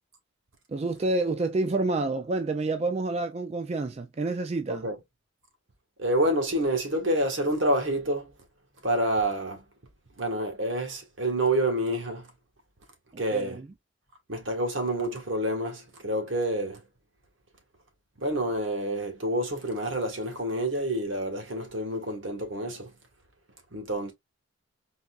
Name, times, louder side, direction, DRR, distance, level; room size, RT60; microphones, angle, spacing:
voice 1, 0.7-4.9 13.3-13.7, right 2 dB, 30° right, 0.3 m, -28 dB
voice 2, 6.0-8.3 8.8-9.6 10.2-12.3 13.2-13.6 14.3-16.8 18.2-22.9 23.7-24.1, right 1 dB, 75° right, 1.7 m, -28 dB
4.1 x 3.3 x 2.4 m
head